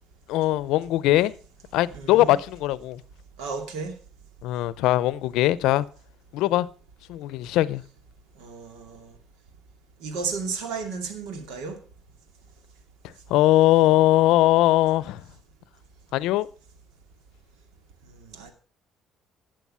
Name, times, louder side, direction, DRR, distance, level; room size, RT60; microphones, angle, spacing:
voice 1, 0.3-1.3 1.7-3.0 4.4-5.9 6.3-6.7 7.1-7.8 13.0-15.2 16.1-16.5, left 15 dB, 80° left, 0.6 m, -21 dB
voice 2, 1.9-2.4 3.4-3.9 8.4-9.1 10.0-11.8 18.2-18.5, right 4 dB, 85° right, 2.4 m, -33 dB
12.0 x 7.7 x 5.6 m
cardioid pair, 110°, 0 cm